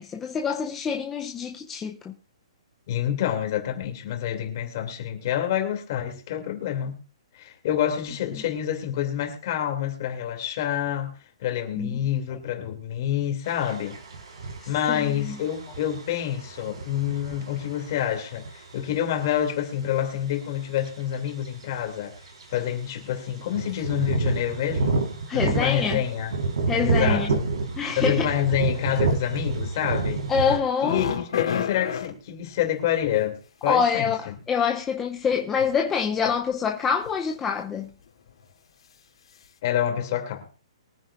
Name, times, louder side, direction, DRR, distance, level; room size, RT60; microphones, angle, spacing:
voice 1, 0.0-2.1 11.7-12.0 14.6-15.4 25.3-26.0 26.7-27.4 27.8-28.4 30.3-31.0 33.7-37.9, left 6 dB, 10° left, 0.5 m, -26 dB
voice 2, 2.9-7.0 7.3-11.1 11.4-14.0 14.7-18.5 18.7-22.2 22.5-25.0 25.3-26.3 26.8-27.5 28.0-30.2 30.8-34.3 39.6-40.5, left 10 dB, 35° left, 2.5 m, -27 dB
sound 1, 13.5-19.1 20.8-20.9 21.3-21.8 22.1-22.2 22.4-22.6 23.5-30.6, right 3 dB, 65° right, 4.0 m, -28 dB
sound 2, 30.6-32.1 34.3-34.4 35.3-35.8 36.1-36.3 37.0-37.4 37.7-37.9 38.3-38.4, left 7 dB, 65° left, 2.8 m, -30 dB
23.0 x 9.2 x 2.5 m
hypercardioid pair, 175°, 3 cm